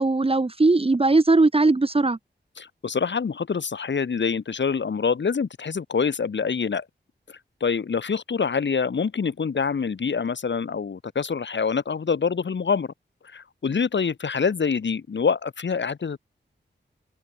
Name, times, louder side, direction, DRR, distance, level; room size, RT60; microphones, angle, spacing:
voice 1, 0.0-2.2, right 3 dB, 30° right, 1.9 m, -19 dB
voice 2, 2.6-6.9 7.3-12.9 13.3-16.2, left 5 dB, 70° left, 2.7 m, -26 dB
wide cardioid pair, 90°, 19 cm